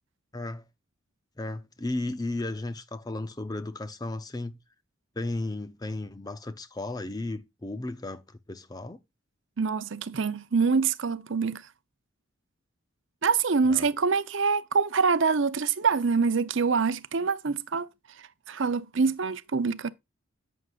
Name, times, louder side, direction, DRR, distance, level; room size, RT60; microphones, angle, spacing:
voice 1, 0.3-0.6 1.4-4.6 5.2-8.2 8.5-9.0 13.7-13.9, left 2 dB, 20° left, 0.6 m, -34 dB
voice 2, 9.6-11.6 13.2-17.9 18.2-19.9, right 5 dB, 60° right, 0.6 m, -25 dB
11.0 x 7.9 x 2.4 m
head